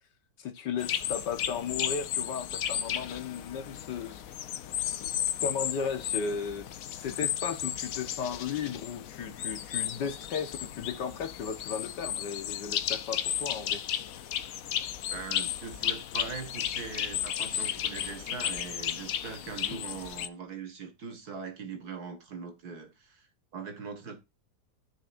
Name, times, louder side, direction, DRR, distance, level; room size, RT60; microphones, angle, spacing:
voice 1, 0.4-4.2 4.9-5.1 5.4-6.7 7.0-13.8 19.7-19.8, left 6 dB, 90° left, 1.9 m, -35 dB
sound 1, 0.8-20.3, left 10 dB, 65° left, 1.0 m, -34 dB
voice 2, 15.1-23.3 23.5-24.2, right 5 dB, 65° right, 2.2 m, -41 dB
13.5 x 6.2 x 2.6 m
omnidirectional pair, 1.8 m